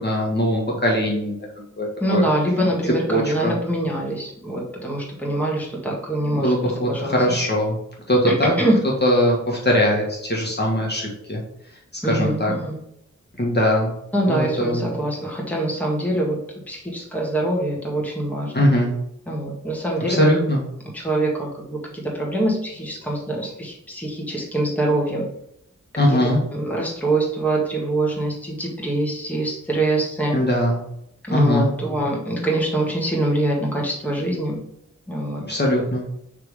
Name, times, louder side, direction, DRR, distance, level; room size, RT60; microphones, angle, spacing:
voice 1, 0.0-2.2 3.1-3.5 6.3-7.8 8.1-8.5 9.0-11.4 12.1-12.5 13.4-13.9 14.3-14.8 18.5-18.9 20.1-20.6 26.0-26.4 30.3-30.8 31.3-31.7 35.5-36.0, equal, 35° left, -3 dB, 1.6 m, -21 dB
voice 2, 2.0-6.5 6.9-7.1 8.3-8.8 12.0-12.7 14.1-16.4 16.7-18.5 19.3-20.2 20.9-25.2 26.1-26.2 26.5-30.4 31.3-34.6 35.1-35.4, right 1 dB, 5° left, -2 dB, 1.7 m, -24 dB
5.9 x 3.6 x 4.8 m, 0.76 s
wide cardioid pair, 70°, 31 cm